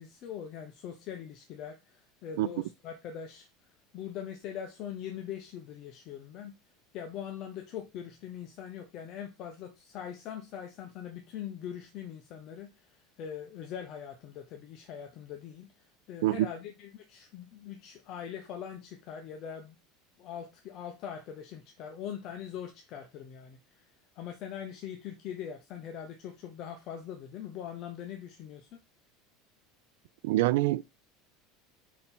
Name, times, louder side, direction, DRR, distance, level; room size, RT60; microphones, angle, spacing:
voice 1, 0.0-3.5 3.9-6.5 6.9-15.7 16.1-19.8 20.2-23.9 24.1-28.8, left 9 dB, 40° left, 0.8 m, -42 dB
voice 2, 30.2-30.8, right 16 dB, 80° right, 0.3 m, -25 dB
5.4 x 4.3 x 4.2 m
cardioid pair, 175°, 0 cm